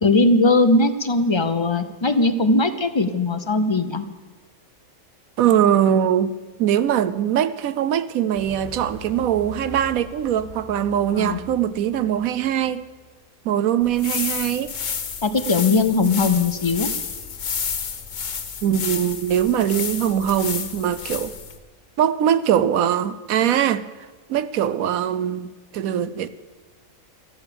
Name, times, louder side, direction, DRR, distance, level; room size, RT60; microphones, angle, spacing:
voice 1, 0.0-4.0 11.2-11.4 15.2-16.9, left 2 dB, 35° left, 0.4 m, -19 dB
voice 2, 5.4-6.3 6.6-12.8 13.4-14.7 18.6-21.3 22.0-23.9 24.3-26.3, right 10 dB, 75° right, 1.1 m, -21 dB
sound 1, 8.3-13.1, left 2 dB, 30° right, 3.0 m, -41 dB
sound 2, 13.8-21.6, left 6 dB, 60° left, 1.5 m, -30 dB
13.5 x 13.0 x 6.9 m
omnidirectional pair, 1.5 m